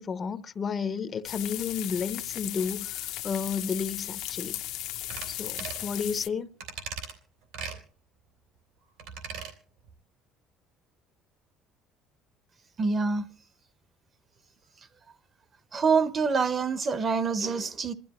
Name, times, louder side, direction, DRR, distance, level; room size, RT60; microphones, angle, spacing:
voice 1, 0.0-3.0 3.2-4.6 5.3-6.5, left 6 dB, 30° left, 0.6 m, -32 dB
sound 1, 1.2-6.3, left 14 dB, 70° left, 0.7 m, -36 dB
sound 2, 5.1-5.3 5.6-5.9 6.6-7.1 7.5-7.8 9.0-9.5 9.9-10.0, right 6 dB, 90° right, 2.8 m, -38 dB
voice 2, 12.8-13.3 15.7-17.9, right 5 dB, 30° right, 0.7 m, -26 dB
28.0 x 12.0 x 3.0 m
cardioid pair, 145°, 0 cm